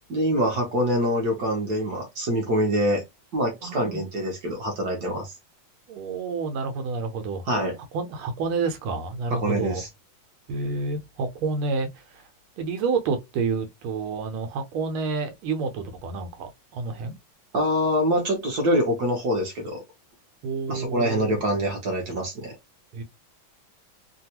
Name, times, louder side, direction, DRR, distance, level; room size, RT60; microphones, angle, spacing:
voice 1, 0.1-3.0 3.3-5.3 7.5-7.8 9.3-9.9 17.5-19.8 20.7-22.6, equal, 60° right, 1.2 m, -25 dB
voice 2, 3.6-4.0 5.9-7.4 7.9-9.8 10.5-11.9 12.6-17.1 20.4-21.4 22.9-23.0, right 4 dB, 90° right, 1.5 m, -29 dB
3.4 x 2.2 x 2.8 m
omnidirectional pair, 2.2 m